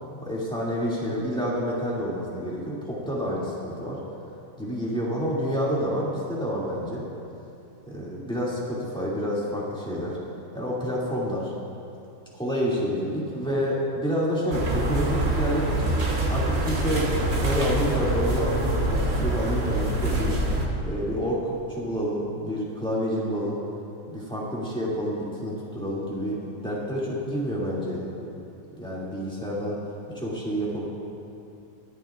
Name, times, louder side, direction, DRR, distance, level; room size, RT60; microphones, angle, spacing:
voice 1, 0.2-4.0 4.6-7.0 7.9-10.2 10.5-11.5 12.3-16.0 16.3-20.4 20.8-23.6 24.1-28.1 28.7-29.8 30.1-30.9, equal, 5° left, -7 dB, 2.3 m, -28 dB
sound 1, 14.5-20.7, right 1 dB, 40° right, 1.3 m, -25 dB
22.5 x 11.0 x 2.5 m, 2.8 s
omnidirectional pair, 1.9 m